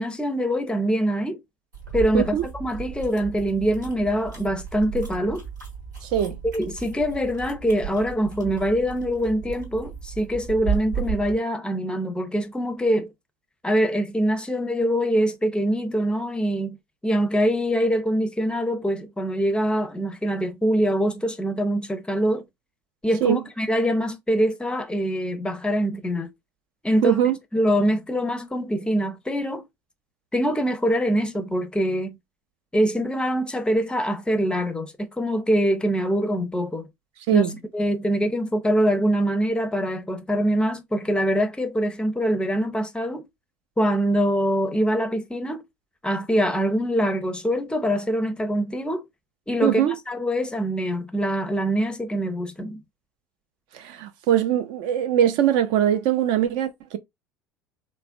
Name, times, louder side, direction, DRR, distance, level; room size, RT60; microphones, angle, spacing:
voice 1, 0.0-1.4 1.9-5.4 6.4-13.1 13.6-16.8 17.0-22.4 23.0-26.3 26.8-27.2 27.5-29.6 30.3-32.2 32.7-36.9 37.3-37.5 37.7-43.2 43.8-45.6 46.0-49.0 49.5-52.8, equal, 10° left, 0.5 m, -24 dB
sound 1, 1.7-11.4, right 7 dB, 85° right, 1.1 m, -34 dB
voice 2, 6.0-6.4 23.2-23.4 27.0-27.4 37.3-37.5 49.6-49.9 53.7-57.0, right 10 dB, 55° right, 0.4 m, -22 dB
3.3 x 2.1 x 2.3 m
figure-of-eight pair, 65°, 10 cm